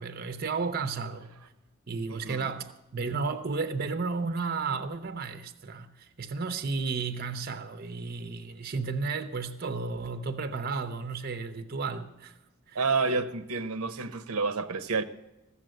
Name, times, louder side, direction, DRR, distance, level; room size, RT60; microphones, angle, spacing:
voice 1, 0.0-1.4 1.9-12.3 12.7-12.8, right 4 dB, 45° right, 0.7 m, -33 dB
voice 2, 2.1-2.5 12.7-15.0, right 4 dB, 80° right, 0.8 m, -29 dB
15.0 x 7.1 x 7.7 m
head